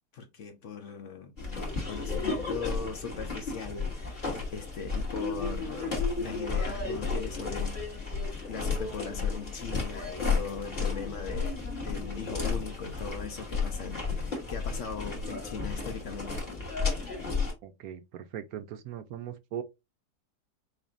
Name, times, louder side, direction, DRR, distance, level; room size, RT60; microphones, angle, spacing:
voice 1, 0.1-1.3 1.8-4.2 4.5-8.2 8.4-16.4, left 5 dB, 60° left, 0.9 m, -39 dB
sound 1, 1.4-17.5, left 4 dB, 30° left, 2.3 m, -33 dB
voice 2, 17.6-19.6, right 9 dB, 70° right, 1.0 m, -39 dB
6.5 x 2.7 x 2.5 m
omnidirectional pair, 1.7 m